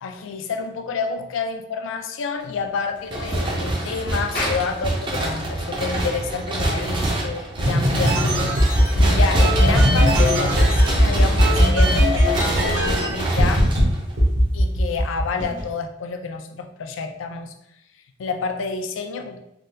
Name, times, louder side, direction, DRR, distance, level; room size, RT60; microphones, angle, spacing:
voice 1, 0.0-13.7 14.5-17.5 18.2-19.4, left 5 dB, 70° left, 6 dB, 0.3 m, -29 dB
sound 1, 3.1-14.3, right 1 dB, 25° right, 0.4 m, -26 dB
Clapping, 4.4-9.0, left 2 dB, 45° left, 0.8 m, -36 dB
sound 2, 7.7-13.1 13.4-13.8 14.2-15.6, equal, 70° right, 0.9 m, -18 dB
3.4 x 2.2 x 2.7 m, 0.80 s
head